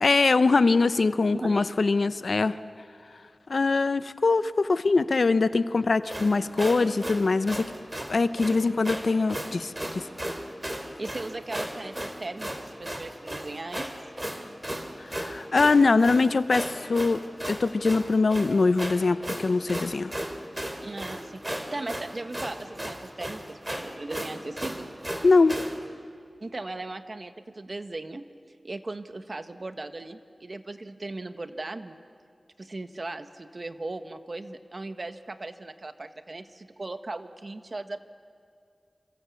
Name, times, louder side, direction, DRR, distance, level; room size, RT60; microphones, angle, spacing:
voice 1, 0.0-2.6 3.5-7.7 8.1-10.0 15.0-17.2 17.5-20.1 25.2-25.6, left 3 dB, 75° left, 13 dB, 0.8 m, -23 dB
sound 1, 6.1-25.8, right 1 dB, 20° right, 3.4 m, -35 dB
voice 2, 11.0-13.9 20.8-24.9 26.4-28.3 28.6-31.9 32.6-38.0, right 2 dB, 55° right, 9 dB, 1.4 m, -38 dB
27.5 x 26.0 x 8.4 m, 2.3 s
wide cardioid pair, 50°, 0 cm